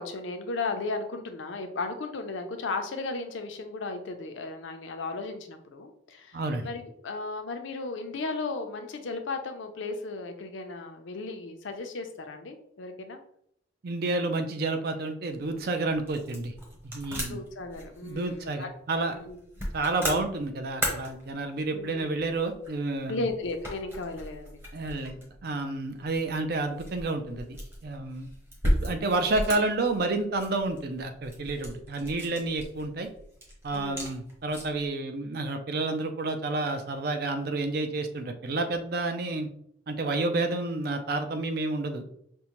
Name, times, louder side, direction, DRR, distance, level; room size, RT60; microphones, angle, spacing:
voice 1, 0.0-13.2 17.2-18.7 19.1-19.7 21.7-22.1 23.1-24.6 33.7-34.1, left 3 dB, 75° left, 6 dB, 0.5 m, -35 dB
voice 2, 6.3-6.7 13.8-16.5 16.8-17.4 18.0-19.2 19.7-23.3 24.7-28.3 28.6-33.1 33.6-39.5 39.9-42.0, right 2 dB, 50° right, 7 dB, 0.4 m, -30 dB
sound 1, 15.3-34.9, equal, 10° right, 0.8 m, -37 dB
5.2 x 2.1 x 2.9 m, 0.70 s
head